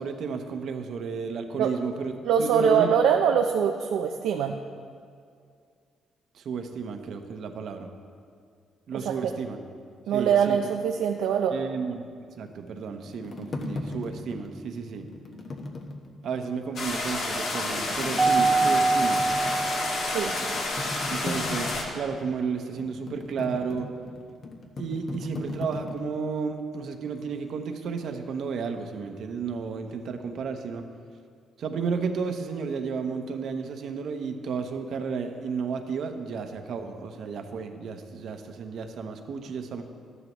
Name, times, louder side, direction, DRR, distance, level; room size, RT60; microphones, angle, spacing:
voice 1, 0.0-2.9 6.3-7.9 8.9-9.6 10.1-10.6 11.5-15.1 16.2-19.3 21.1-23.9 24.8-30.8 31.6-39.8, right 5 dB, 70° right, 6 dB, 0.9 m, -32 dB
voice 2, 2.2-4.6 8.9-9.2 10.1-11.6 20.0-20.3, right 7 dB, 85° right, 3 dB, 0.5 m, -23 dB
sound 1, 12.5-16.5 16.9-17.0 17.5-26.0, left 2 dB, 50° left, 1.1 m, -38 dB
sound 2, 16.8-21.8, left 2 dB, 70° left, 1.9 m, -30 dB
Mallet percussion, 18.2-20.6, right 3 dB, 15° right, 0.7 m, -24 dB
13.0 x 11.0 x 3.1 m, 2.2 s
cardioid pair, 90°, 0 cm